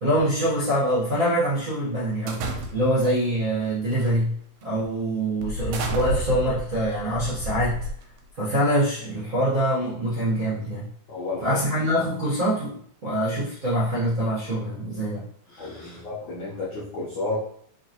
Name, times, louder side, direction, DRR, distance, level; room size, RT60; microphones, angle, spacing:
voice 1, 0.0-2.4 2.7-4.4 4.6-7.8 8.4-10.9 11.4-15.2 15.5-16.0, equal, 50° right, -10 dB, 1.0 m, -24 dB
sound 1, 2.3-3.1 3.9-4.2 4.6-4.7 5.4-8.3, right 1 dB, 80° right, 1.8 m, -31 dB
voice 2, 11.1-11.6 15.6-17.4, left 3 dB, 75° left, -7 dB, 1.1 m, -31 dB
3.9 x 3.4 x 2.8 m, 0.62 s
omnidirectional pair, 3.4 m